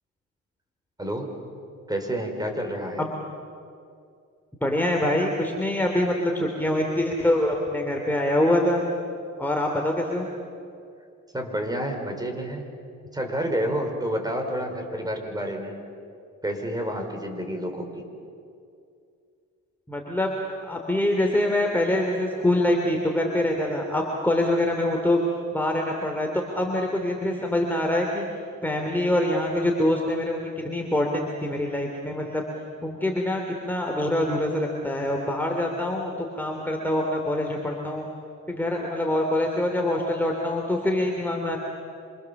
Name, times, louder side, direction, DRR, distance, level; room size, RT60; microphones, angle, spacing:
voice 1, 1.0-1.3 1.9-3.0 11.3-12.7 13.1-15.8 16.4-18.0, equal, 15° right, 4 dB, 5.1 m, -29 dB
voice 2, 4.6-8.8 9.4-10.3 19.9-25.2 25.5-28.2 28.6-32.4 32.8-38.1 38.5-41.6, left 1 dB, 5° left, 0 dB, 3.1 m, -25 dB
27.5 x 27.0 x 7.3 m, 2.4 s
cardioid pair, 90°, 30 cm